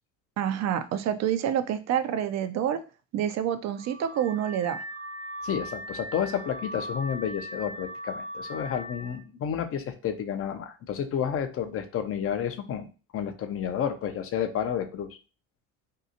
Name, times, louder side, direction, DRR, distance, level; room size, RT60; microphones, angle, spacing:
voice 1, 0.4-2.8 3.1-4.8, right 9 dB, 45° right, 10 dB, 0.4 m, -27 dB
Car / Alarm, 3.7-9.2, equal, 90° right, 0.7 m, -39 dB
voice 2, 5.4-12.9 13.1-15.2, left 8 dB, 40° left, 8 dB, 0.5 m, -30 dB
2.7 x 2.3 x 2.6 m, 0.35 s
hypercardioid pair, 70°, 37 cm